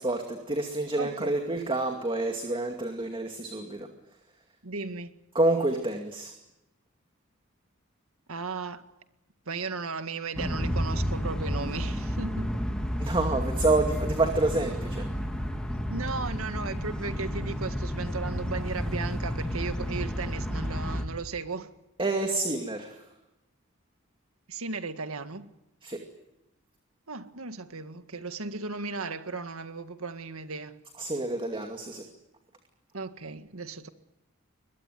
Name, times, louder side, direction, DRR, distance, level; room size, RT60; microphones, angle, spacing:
voice 1, 0.0-3.9 5.3-6.3 13.0-15.1 22.0-23.0 25.8-26.0 31.0-32.1, right 2 dB, 25° right, 2.4 m, -28 dB
voice 2, 1.0-1.4 4.6-5.2 8.3-8.9 9.5-12.6 15.9-21.7 24.5-25.5 27.1-30.8 32.9-33.9, right 4 dB, 90° right, 1.9 m, -36 dB
sound 1, 10.3-21.0, equal, 5° left, 2.9 m, -31 dB
23.5 x 22.0 x 9.3 m
head